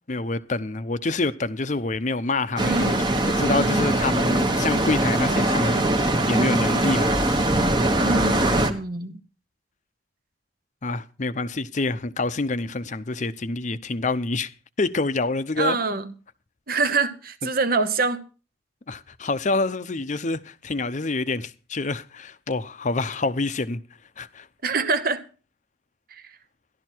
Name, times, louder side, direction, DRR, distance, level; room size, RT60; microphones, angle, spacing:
voice 1, 0.1-3.0 3.2-7.2 10.8-14.5 14.8-15.8 18.9-23.8 24.2-24.5, left 3 dB, 40° left, 0.7 m, -27 dB
sound 1, 2.6-8.7, right 1 dB, 25° right, 1.1 m, -22 dB
voice 2, 2.6-3.1 3.4-4.1 8.0-9.2 15.6-16.1 16.7-18.2 24.6-25.2 26.1-26.4, right 3 dB, 50° right, 1.1 m, -25 dB
13.0 x 12.0 x 4.5 m
head